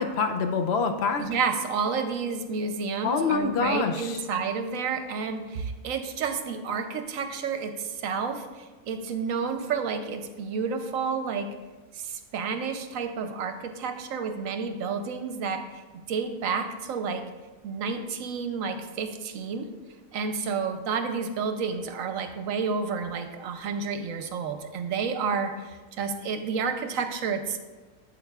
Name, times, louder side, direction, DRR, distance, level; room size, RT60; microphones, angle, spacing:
voice 1, 0.0-1.3 3.0-4.2, left 5 dB, 65° left, 6 dB, 0.6 m, -26 dB
voice 2, 1.2-11.5 11.9-15.8 16.1-17.2 17.6-19.7 20.1-27.6, right 5 dB, 70° right, 7 dB, 1.0 m, -30 dB
8.8 x 7.7 x 2.3 m, 1.3 s
omnidirectional pair, 1.6 m